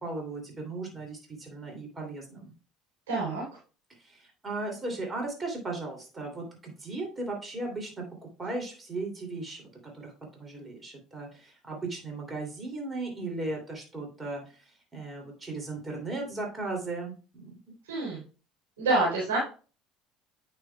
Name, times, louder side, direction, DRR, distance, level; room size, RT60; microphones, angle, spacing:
voice 1, 0.0-2.5 4.0-8.0 8.4-17.5, right 2 dB, 25° right, 1 dB, 2.9 m, -37 dB
voice 2, 3.1-3.4 17.8-18.2 18.8-19.4, right 2 dB, 80° right, -6 dB, 3.6 m, -27 dB
9.1 x 6.5 x 2.3 m, 0.35 s
hypercardioid pair, 70°, 0 cm